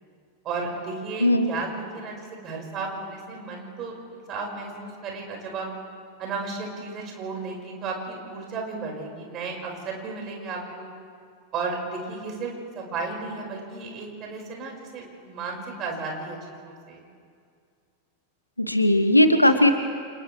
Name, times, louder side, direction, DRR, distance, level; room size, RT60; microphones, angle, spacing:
voice 1, 0.4-5.7 6.2-10.9 11.5-17.0, right 4 dB, 35° right, 0 dB, 5.3 m, -34 dB
voice 2, 18.6-19.7, left 1 dB, 85° left, 8 dB, 1.3 m, -18 dB
29.5 x 28.0 x 3.3 m, 2.3 s
figure-of-eight pair, 90°, 0 cm